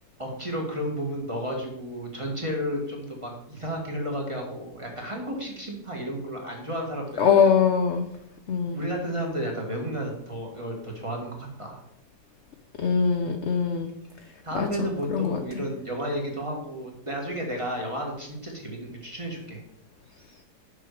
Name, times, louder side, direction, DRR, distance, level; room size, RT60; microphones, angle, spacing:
voice 1, 0.2-7.5 8.7-11.8 14.4-19.6, equal, 20° right, 0 dB, 1.5 m, -32 dB
voice 2, 7.2-8.1 8.5-8.8 12.8-13.9 14.5-15.4, left 6 dB, 65° left, 5 dB, 0.7 m, -22 dB
6.7 x 6.1 x 4.8 m, 0.75 s
omnidirectional pair, 1.9 m